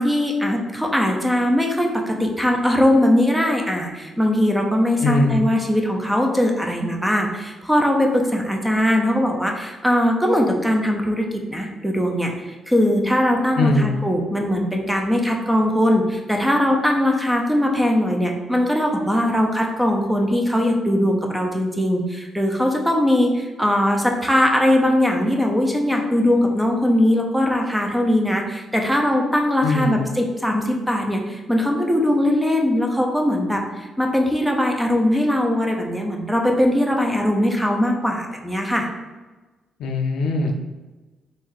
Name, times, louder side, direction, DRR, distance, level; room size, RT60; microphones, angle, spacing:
voice 1, 0.0-38.9, left 1 dB, 5° right, 1 dB, 0.7 m, -20 dB
voice 2, 5.0-5.4 13.6-13.9 29.6-30.0 39.8-40.5, left 2 dB, 80° left, 3 dB, 0.6 m, -20 dB
3.6 x 2.7 x 4.6 m, 1.2 s
cardioid pair, 90°, 0 cm